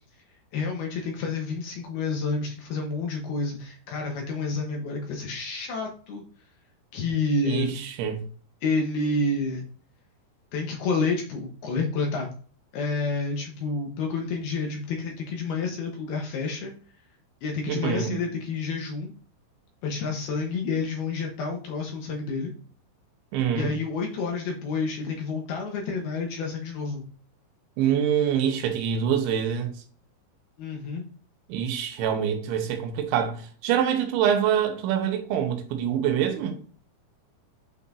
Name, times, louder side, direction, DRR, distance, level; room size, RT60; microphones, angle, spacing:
voice 1, 0.5-6.2 6.9-7.8 8.6-9.7 10.5-12.3 12.7-16.7 17.4-19.1 19.8-22.5 23.5-27.0 30.6-31.1, left 3 dB, 70° left, 2.5 m, -29 dB
voice 2, 7.5-8.2 17.7-18.2 23.3-23.7 27.8-29.7 31.5-36.6, right 8 dB, 90° right, 3.2 m, -25 dB
8.9 x 5.4 x 2.6 m
omnidirectional pair, 5.4 m